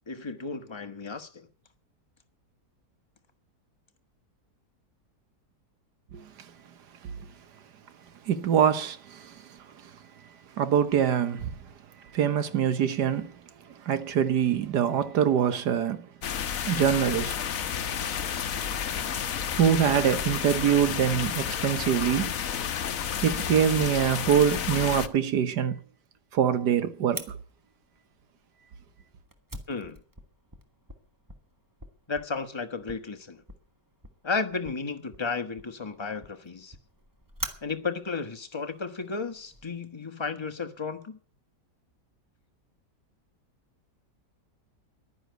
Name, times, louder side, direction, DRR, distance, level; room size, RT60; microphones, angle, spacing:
voice 1, 0.1-1.5 29.7-30.0 32.1-33.4 34.2-36.8 37.6-41.2, left 4 dB, 20° left, 1.1 m, -33 dB
voice 2, 8.3-9.4 10.6-11.5 12.1-13.3 13.8-16.1 16.7-17.3 19.6-22.3 23.2-25.8 26.3-27.2, right 8 dB, 75° right, 1.7 m, -24 dB
sound 1, 16.2-25.1, left 8 dB, 55° left, 1.2 m, -31 dB
Fire, 27.1-39.6, right 1 dB, 10° right, 1.3 m, -46 dB
11.5 x 10.0 x 8.0 m
omnidirectional pair, 1.8 m